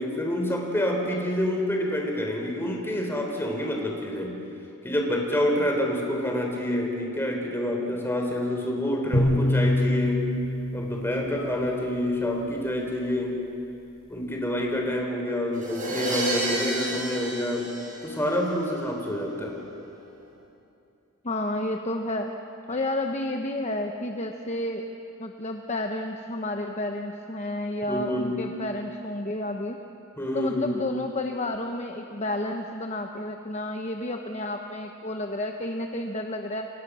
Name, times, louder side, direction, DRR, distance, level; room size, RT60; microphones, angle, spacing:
voice 1, 0.0-4.3 4.8-10.3 10.7-13.4 14.1-17.7 18.0-19.6 27.8-28.4 30.2-30.7, left 1 dB, 10° left, 0 dB, 3.8 m, -27 dB
sound 1, 9.1-12.4, left 1 dB, 50° left, 6.0 m, -26 dB
sound 2, 15.5-18.5, right 1 dB, 35° right, 7.3 m, -30 dB
voice 2, 21.2-22.3 22.7-24.8 25.2-29.8 30.3-36.7, left 1 dB, 30° left, 4 dB, 1.0 m, -31 dB
28.5 x 24.5 x 6.3 m, 2.7 s
head